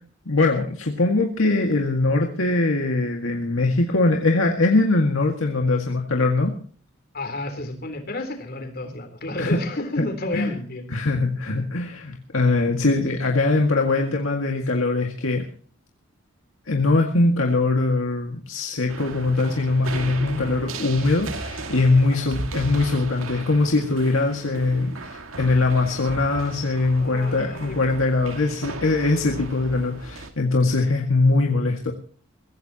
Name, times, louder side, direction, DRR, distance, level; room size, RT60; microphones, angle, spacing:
voice 1, 0.3-6.5 9.4-9.6 10.3-10.5 10.9-15.4 16.7-31.9, left 3 dB, 70° left, 2 dB, 2.0 m, -22 dB
voice 2, 7.1-10.8 20.3-20.5 22.1-22.3 25.9-26.0 27.0-27.8, left 2 dB, 50° left, 6 dB, 3.7 m, -31 dB
sound 1, 18.9-30.3, right 3 dB, 75° right, 2.0 m, -36 dB
23.0 x 16.0 x 2.9 m, 0.42 s
head